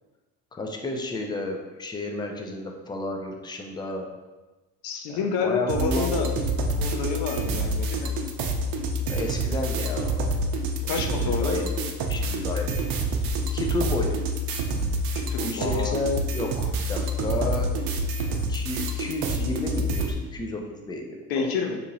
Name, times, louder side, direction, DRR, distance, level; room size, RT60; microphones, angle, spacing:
voice 1, 0.5-4.1 5.1-6.3 9.1-10.1 10.8-11.7 12.0-12.8 13.2-14.2 15.4-17.9 18.5-21.8, left 2 dB, 15° left, 2 dB, 0.4 m, -32 dB
voice 2, 4.8-6.3 6.7-8.2 10.9-11.6 15.1-16.0 21.3-21.8, left 5 dB, 70° left, 4 dB, 0.6 m, -29 dB
sound 1, 5.7-20.1, right 1 dB, 70° right, 0.6 m, -27 dB
2.8 x 2.6 x 4.0 m, 1.2 s
cardioid pair, 115°, 36 cm